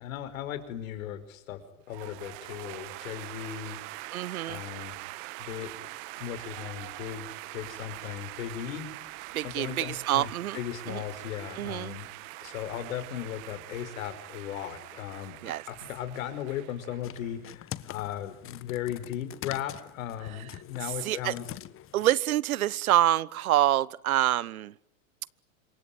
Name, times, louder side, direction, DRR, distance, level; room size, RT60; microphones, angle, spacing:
voice 1, 0.0-1.6 1.9-3.8 4.5-5.0 5.4-5.7 6.1-8.9 9.4-12.1 12.4-21.5, left 10 dB, 70° left, 10 dB, 5.6 m, -37 dB
sound 1, 1.9-17.4, right 20 dB, 50° right, 1.5 m, -43 dB
voice 2, 4.1-4.6 9.3-10.6 10.9-11.0 11.6-12.0 15.4-15.6 21.0-21.3 21.9-24.7, right 13 dB, 80° right, 23 dB, 1.1 m, -26 dB
sound 2, 17.0-22.2, left 12 dB, 30° left, 1.4 m, -44 dB
27.0 x 23.5 x 9.3 m, 0.65 s
hypercardioid pair, 110°, 42 cm